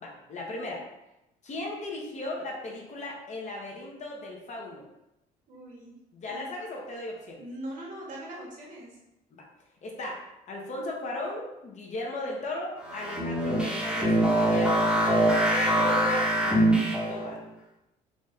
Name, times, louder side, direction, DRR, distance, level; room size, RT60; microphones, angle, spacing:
voice 1, 0.0-0.8 1.4-4.8 6.1-7.4 9.3-9.5 9.8-17.4, left 1 dB, 45° left, -1 dB, 0.9 m, -37 dB
voice 2, 5.5-5.9 6.2-6.4 7.4-8.9, right 1 dB, 50° right, -3 dB, 1.4 m, -41 dB
sound 1, 12.8-17.3, right 1 dB, 5° right, 1.0 m, -24 dB
4.1 x 2.6 x 3.3 m, 0.91 s
cardioid pair, 110°, 17 cm